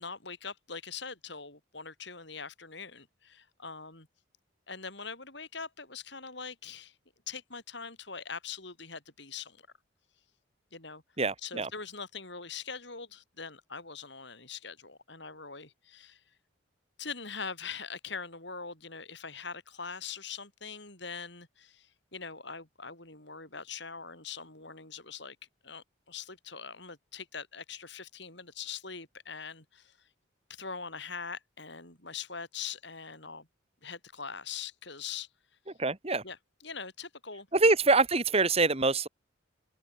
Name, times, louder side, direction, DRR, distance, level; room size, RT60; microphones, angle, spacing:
voice 1, 0.0-4.1 4.7-7.0 7.3-9.6 10.7-11.0 11.4-16.2 17.0-25.4 25.6-30.0 30.5-33.5 33.8-35.3 36.2-37.5, left 5 dB, 60° left, 7.1 m, -42 dB
voice 2, 11.2-11.7 35.8-36.2 37.5-39.1, right 3 dB, 30° right, 1.6 m, -25 dB
open air
head